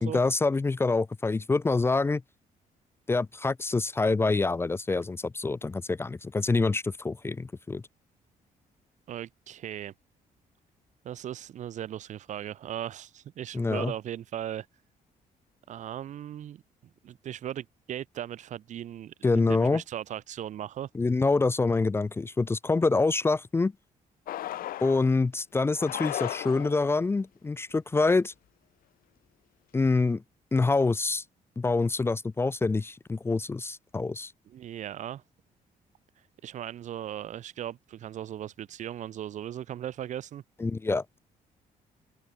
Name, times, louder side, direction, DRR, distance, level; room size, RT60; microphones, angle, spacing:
voice 1, 0.0-2.2 3.1-7.8 13.5-13.9 19.2-19.8 20.9-23.7 24.8-28.3 29.7-30.2 30.5-31.2 31.6-34.3 40.6-41.0, left 3 dB, 15° left, 0.6 m, -26 dB
voice 2, 9.1-9.9 11.0-14.7 15.7-16.6 17.0-20.9 34.5-35.2 36.4-40.4, right 11 dB, 55° right, 0.8 m, -38 dB
sound 1, 24.3-25.1 25.7-26.9, left 13 dB, 75° left, 1.2 m, -35 dB
open air
cardioid pair, 155°, 15 cm